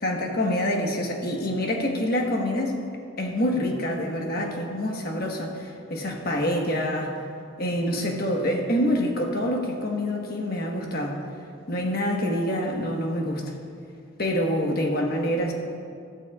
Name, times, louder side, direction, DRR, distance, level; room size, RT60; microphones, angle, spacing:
voice 1, 0.0-2.9 3.2-7.1 7.6-11.2 11.7-13.5 14.2-15.5, equal, 45° left, 1 dB, 1.3 m, -26 dB
14.0 x 13.0 x 2.4 m, 2.3 s
head